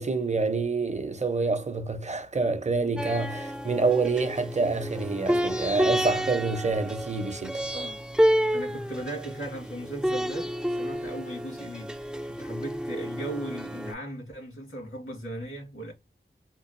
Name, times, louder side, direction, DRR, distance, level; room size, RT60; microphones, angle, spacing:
voice 1, 0.0-7.6, right 3 dB, 35° right, 0.6 m, -27 dB
sound 1, 3.0-13.9, equal, 5° right, 0.3 m, -30 dB
voice 2, 8.5-10.5 10.8-15.9, right 1 dB, 85° left, 2.0 m, -37 dB
3.8 x 2.3 x 2.6 m
wide cardioid pair, 40°, 21 cm